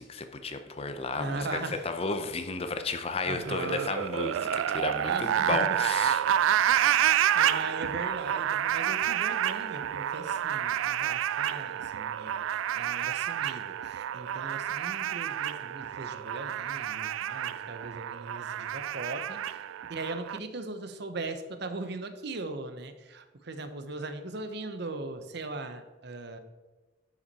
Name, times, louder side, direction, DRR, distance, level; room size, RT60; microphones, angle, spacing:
voice 1, 0.0-1.5 1.8-6.2, left 3 dB, 30° left, 8 dB, 0.6 m, -33 dB
voice 2, 1.1-1.9 3.2-3.9 5.0-5.5 6.7-12.4 12.7-19.6 19.9-26.4, right 3 dB, 60° right, 9 dB, 0.9 m, -39 dB
sound 1, 3.4-20.4, right 10 dB, 85° right, 0.3 m, -29 dB
11.0 x 6.1 x 4.2 m, 1.2 s
head